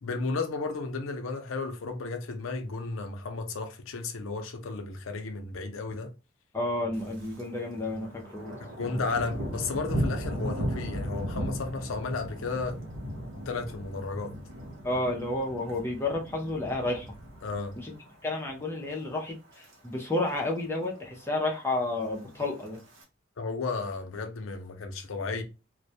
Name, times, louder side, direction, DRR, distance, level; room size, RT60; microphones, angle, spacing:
voice 1, 0.0-6.1 8.8-12.8 13.3-14.3 17.4-17.7 23.4-25.4, left 3 dB, 90° left, 0.5 m, -33 dB
voice 2, 6.5-8.6 14.8-17.1 17.8-17.9 18.2-22.8, left 2 dB, 10° left, 0.5 m, -31 dB
Thunder, 6.9-7.5 7.8-18.1 18.5-18.8 19.3-19.7 20.0-20.1 20.3-20.4 20.7-21.3 22.1-23.0, equal, 75° right, 0.7 m, -36 dB
2.2 x 2.1 x 2.6 m
head